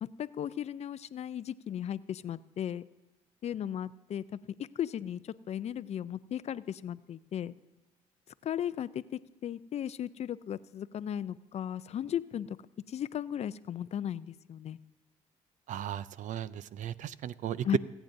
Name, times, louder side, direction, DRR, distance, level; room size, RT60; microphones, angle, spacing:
voice 1, 0.0-2.8 3.4-4.4 4.8-7.5 8.4-12.6 12.9-14.8 17.6-17.8, left 10 dB, 50° left, 16 dB, 0.4 m, -36 dB
voice 2, 15.7-17.8, right 10 dB, 65° right, 17 dB, 0.5 m, -35 dB
26.5 x 9.0 x 2.6 m, 1.2 s
supercardioid pair, 70°, 14 cm